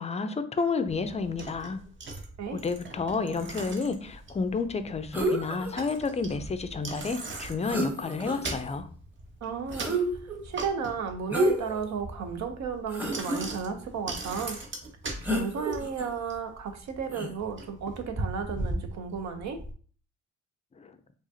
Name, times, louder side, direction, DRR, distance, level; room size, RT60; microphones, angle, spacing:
voice 1, 0.0-1.8 2.5-8.9, left 4 dB, 20° left, 10 dB, 0.4 m, -30 dB
Bicycle, 0.9-19.7, right 2 dB, 40° right, 0.8 m, -40 dB
sound 1, 5.1-5.7 7.4-7.5 7.6-8.6 9.7-10.4 11.3-11.8 12.3-12.4 12.9-13.4 15.2-16.1 17.1-17.3, right 1 dB, 5° right, 0.9 m, -29 dB
voice 2, 9.4-9.9 10.4-14.6 15.3-19.6, right 6 dB, 65° right, 6 dB, 0.7 m, -34 dB
4.8 x 2.4 x 2.7 m, 0.44 s
cardioid pair, 90°, 30 cm